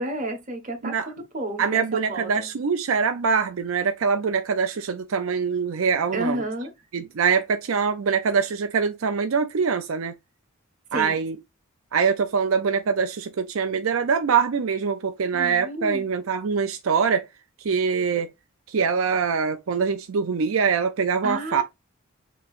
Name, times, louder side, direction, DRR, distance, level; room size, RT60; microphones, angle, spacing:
voice 1, 0.0-2.5 6.1-6.7 10.9-11.2 15.3-16.0 21.2-21.6, right 1 dB, 40° right, 1.3 m, -31 dB
voice 2, 1.6-6.4 6.9-10.1 10.9-11.4 11.9-17.3 17.6-18.3 18.7-21.6, right 6 dB, 75° right, 0.5 m, -24 dB
6.9 x 3.1 x 2.5 m
head